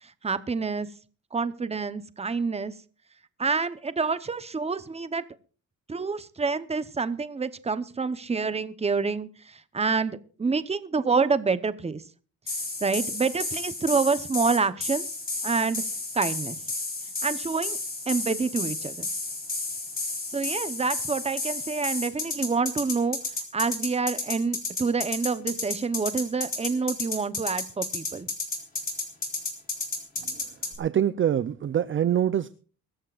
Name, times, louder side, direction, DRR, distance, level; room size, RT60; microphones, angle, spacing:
voice 1, 0.0-0.9 1.3-2.7 3.4-5.2 5.9-12.0 12.8-15.1 15.4-15.8 16.1-16.6 17.2-17.8 18.1-19.1 20.3-23.2 23.5-28.3, right 4 dB, 20° right, 0.9 m, -27 dB
sound 1, 12.5-30.8, left 3 dB, 25° left, 4.4 m, -32 dB
voice 2, 30.8-32.5, right 10 dB, 35° right, 0.5 m, -24 dB
23.5 x 14.0 x 2.5 m
cardioid pair, 135°, 33 cm